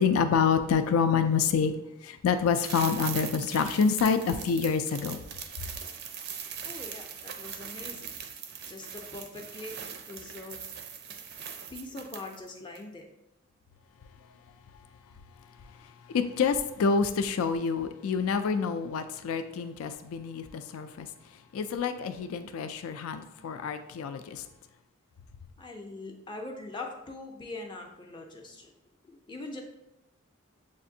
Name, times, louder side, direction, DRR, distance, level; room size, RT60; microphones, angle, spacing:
voice 1, 0.0-1.7 2.0-5.2 16.1-21.1 21.5-24.4, left 6 dB, 85° left, 9 dB, 0.3 m, -27 dB
sound 1, 2.5-12.5 12.8-12.9, right 7 dB, 50° right, 0.4 m, -41 dB
voice 2, 6.6-8.1 8.7-9.7 10.1-10.6 11.7-13.1 25.6-28.7 29.0-29.6, left 2 dB, 20° left, 2 dB, 0.4 m, -42 dB
7.0 x 2.5 x 2.7 m, 0.87 s
head